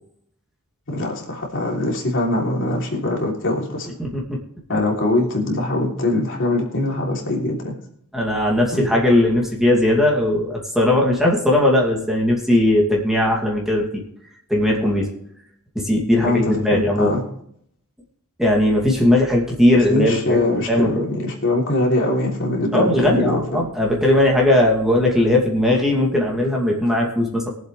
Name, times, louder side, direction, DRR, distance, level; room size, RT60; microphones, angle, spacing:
voice 1, 0.9-3.9 4.7-7.7 8.7-8.9 16.2-17.2 19.7-23.6, left 2 dB, 60° left, -1 dB, 3.3 m, -22 dB
voice 2, 4.0-4.4 8.1-14.0 14.5-15.1 15.7-17.2 18.4-21.0 22.7-27.5, left 1 dB, ahead, -2 dB, 2.5 m, -18 dB
22.5 x 7.7 x 3.3 m, 0.69 s
head